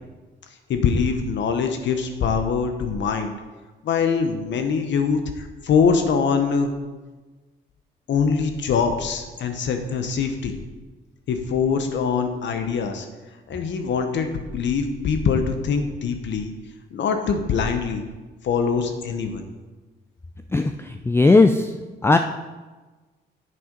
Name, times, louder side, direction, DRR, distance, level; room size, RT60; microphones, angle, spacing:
voice 1, 0.7-3.3 3.8-6.7 8.1-10.5 11.3-13.1 13.5-16.5 16.9-18.0 18.4-19.4, left 5 dB, 65° left, 6 dB, 0.9 m, -23 dB
voice 2, 20.5-21.7 22.0-22.2, left 3 dB, 10° left, 7 dB, 0.4 m, -17 dB
7.7 x 6.2 x 5.2 m, 1.3 s
cardioid pair, 90°, 20 cm